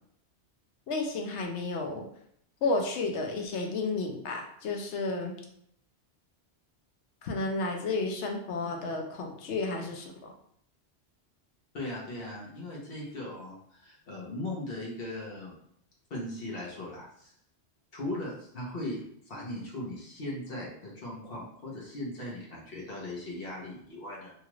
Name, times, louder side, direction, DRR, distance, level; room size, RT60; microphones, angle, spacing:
voice 1, 0.9-2.1 2.6-5.4 7.2-10.3, left 3 dB, 90° left, 2 dB, 0.9 m, -32 dB
voice 2, 11.7-15.6 16.1-17.3 17.9-24.3, left 1 dB, 60° left, -4 dB, 1.0 m, -38 dB
2.9 x 2.3 x 3.0 m, 0.68 s
omnidirectional pair, 1.1 m